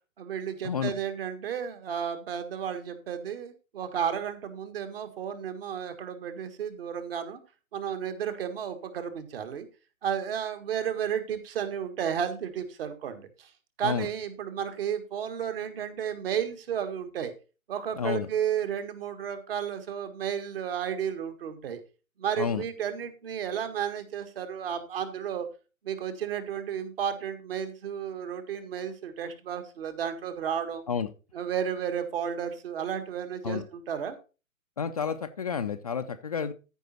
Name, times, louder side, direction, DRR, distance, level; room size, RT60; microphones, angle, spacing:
voice 1, 0.2-7.4 7.7-9.7 10.0-13.5 13.8-17.3 17.7-21.8 22.2-25.5 25.8-30.8 31.3-34.2, right 8 dB, 45° right, 8 dB, 1.7 m, -33 dB
voice 2, 17.9-18.3 22.4-22.6 30.9-31.1 33.4-33.6 34.8-36.5, left 6 dB, 30° left, 6 dB, 0.5 m, -30 dB
13.5 x 5.4 x 4.2 m, 0.32 s
figure-of-eight pair, 125°, 40 cm